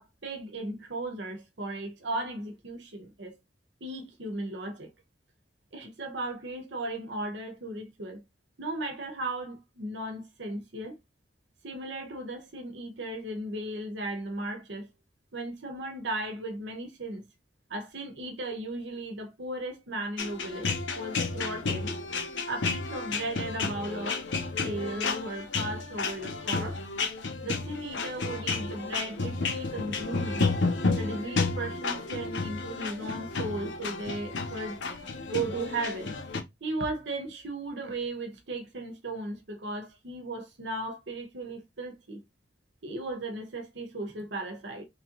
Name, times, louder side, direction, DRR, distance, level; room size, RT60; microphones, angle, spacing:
voice 1, 0.0-3.3 3.8-4.9 5.7-8.2 8.6-10.9 11.6-14.9 15.3-17.3 17.7-20.7 20.9-21.9 22.5-24.2 24.6-26.8 27.4-30.5 30.9-34.8 35.3-36.1 36.6-42.2 42.8-44.8, right 2 dB, 65° right, 0.9 m, -36 dB
sound 1, 20.2-36.4, left 4 dB, 70° left, 0.8 m, -32 dB
3.3 x 2.9 x 3.7 m
head